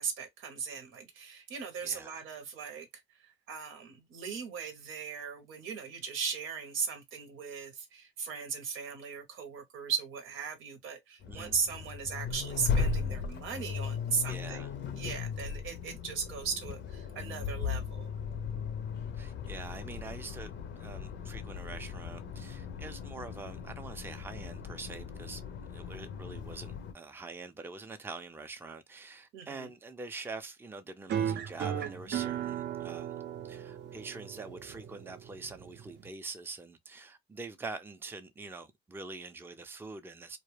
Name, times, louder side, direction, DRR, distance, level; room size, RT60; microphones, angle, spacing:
voice 1, 0.0-18.1 29.3-29.7, right 6 dB, 90° right, 0.8 m, -38 dB
voice 2, 1.8-2.2 11.3-11.6 14.3-14.7 19.1-25.4 25.7-33.1 33.4-40.4, right 3 dB, 10° right, 0.4 m, -45 dB
Accelerating revving vroom, 11.2-26.9, left 6 dB, 65° left, 0.5 m, -37 dB
sound 1, 31.1-36.1, right 9 dB, 60° right, 0.5 m, -36 dB
2.2 x 2.1 x 3.1 m
cardioid pair, 90°, 20 cm